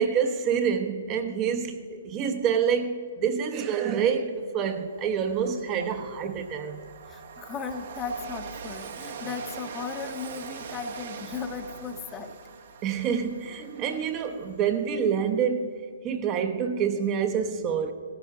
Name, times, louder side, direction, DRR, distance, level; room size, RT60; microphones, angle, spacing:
voice 1, 0.0-6.9 12.8-17.9, right 7 dB, 25° right, 0.8 m, -27 dB
Train, 4.2-4.3 4.7-15.1, right 6 dB, 55° right, 1.0 m, -42 dB
voice 2, 7.1-12.4, left 5 dB, 20° left, 0.8 m, -36 dB
17.0 x 14.0 x 3.7 m
figure-of-eight pair, 125°, 0 cm